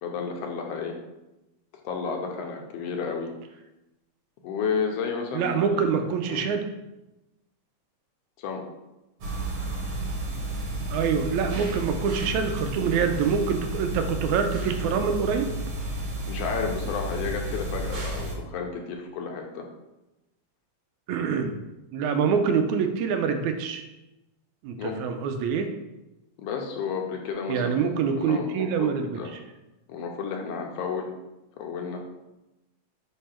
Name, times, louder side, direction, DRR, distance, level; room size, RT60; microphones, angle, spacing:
voice 1, 0.0-1.0 1.8-3.3 4.4-5.8 6.3-6.5 8.4-8.6 16.3-19.7 24.8-25.0 26.4-29.3 29.9-31.1 31.6-32.0, left 5 dB, 70° left, 2 dB, 1.7 m, -32 dB
voice 2, 5.3-6.6 10.9-15.5 21.1-21.6 21.9-23.8 24.6-25.7 27.5-29.2, right 6 dB, 80° right, 6 dB, 1.9 m, -25 dB
sound 1, 9.2-18.4, right 1 dB, 60° right, 2.1 m, -32 dB
5.4 x 5.0 x 4.3 m, 0.97 s
omnidirectional pair, 3.4 m